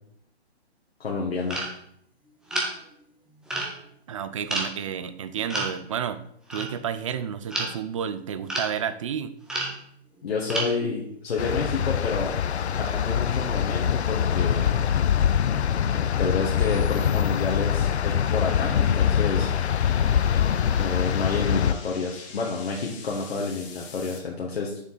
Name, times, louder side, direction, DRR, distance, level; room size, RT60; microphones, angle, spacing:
voice 1, 1.0-1.6 10.2-12.4 12.8-14.7 16.2-19.5 20.8-24.8, left 4 dB, 65° left, -2 dB, 1.7 m, -29 dB
sound 1, 1.5-1.7 2.5-2.7 3.5-3.8 4.5-4.7 5.5-5.8 6.5-6.7 7.2-8.0 8.5-8.7 9.5-9.8 10.2-10.8, right 1 dB, ahead, 0.9 m, -29 dB
voice 2, 4.1-6.2 6.5-9.3, right 8 dB, 30° right, 12 dB, 0.5 m, -31 dB
sound 2, 11.4-21.7, left 8 dB, 85° left, 0.5 m, -24 dB
sound 3, 13.0-24.2, left 4 dB, 30° left, 1.4 m, -46 dB
7.1 x 6.9 x 4.1 m, 0.69 s
hypercardioid pair, 145°, 32 cm